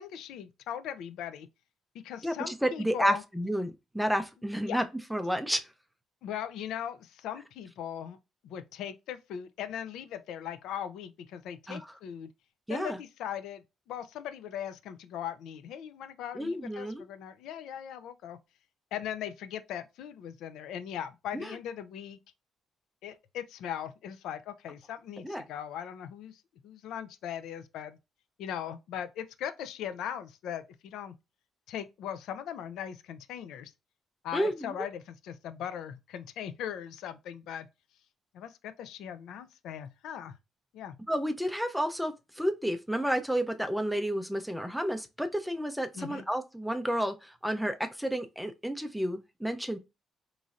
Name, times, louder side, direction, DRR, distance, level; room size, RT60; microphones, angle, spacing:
voice 1, 0.0-1.5 2.0-3.2 4.6-4.8 6.2-8.2 8.4-12.3 12.7-18.4 18.9-22.2 23.0-28.0 28.4-31.1 31.7-33.7 34.2-37.7 38.3-40.4 40.7-41.0 45.9-46.2, left 9 dB, 85° left, 0.4 m, -39 dB
voice 2, 2.2-4.8 5.1-5.6 11.7-11.8 12.7-13.0 16.3-17.0 21.3-21.6 25.2-25.4 34.3-34.7 41.1-49.8, equal, ahead, 0.5 m, -31 dB
3.8 x 3.1 x 2.5 m
cardioid pair, 90°, 0 cm